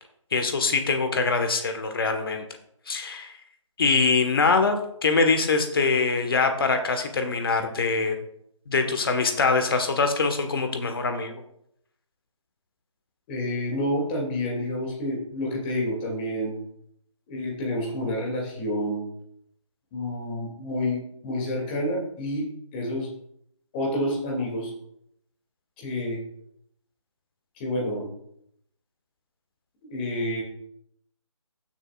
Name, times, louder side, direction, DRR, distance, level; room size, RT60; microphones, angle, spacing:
voice 1, 0.3-2.4 2.9-3.4 3.8-4.8 5.0-8.2 8.7-11.3, left 4 dB, 45° left, 6 dB, 1.4 m, -23 dB
voice 2, 13.3-16.5 17.3-19.0 19.9-23.1 23.7-24.7 25.8-26.2 27.6-28.1 29.8-30.4, left 1 dB, 20° left, -2 dB, 2.6 m, -29 dB
15.0 x 7.3 x 2.5 m, 0.73 s
figure-of-eight pair, 155°, 17 cm